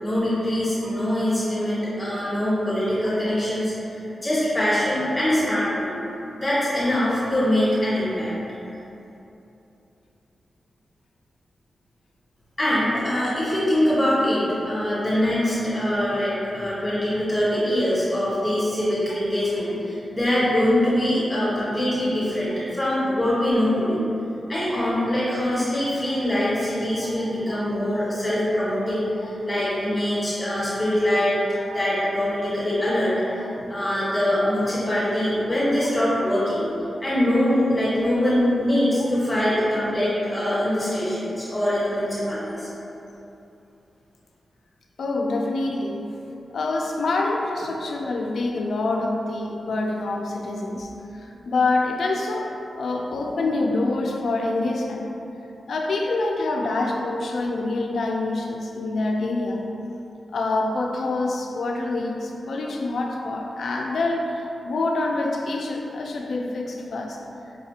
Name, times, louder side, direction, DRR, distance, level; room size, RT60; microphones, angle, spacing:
voice 1, 0.0-5.9 6.3-8.3 12.6-24.0 24.5-36.7 37.0-42.7, left 1 dB, 15° left, -11 dB, 1.3 m, -23 dB
voice 2, 45.0-46.0 46.5-55.0 55.7-59.6 60.3-67.2, left 2 dB, 65° left, 1 dB, 0.4 m, -26 dB
5.2 x 2.4 x 2.7 m, 2.9 s
wide cardioid pair, 175°, 0 cm